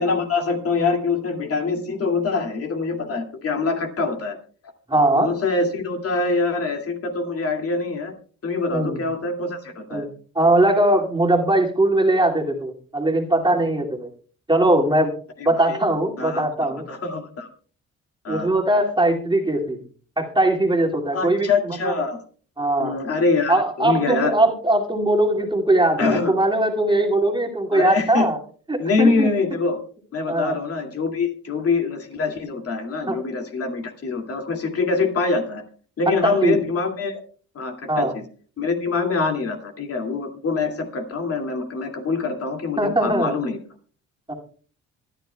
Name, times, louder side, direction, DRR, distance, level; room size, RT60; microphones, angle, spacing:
voice 1, 0.0-4.4 5.1-8.1 8.4-10.1 15.4-15.8 16.2-16.4 16.9-17.5 18.2-18.5 21.1-22.2 22.8-24.3 26.0-26.3 27.7-28.3 28.8-29.8 30.1-35.6 36.0-37.2 37.5-38.2 38.6-43.6, left 4 dB, 50° left, 3 dB, 2.4 m, -24 dB
voice 2, 4.9-5.3 8.7-9.0 9.9-10.1 10.3-14.1 14.5-15.1 15.4-16.9 18.3-19.8 20.2-21.9 22.6-23.0 23.5-28.4 28.7-29.3 30.3-30.6 33.1-33.2 36.1-36.6 37.9-38.1 42.8-43.3 44.3-44.4, right 1 dB, 15° right, 0 dB, 2.4 m, -20 dB
25.0 x 9.9 x 2.3 m, 0.43 s
cardioid pair, 90°, 30 cm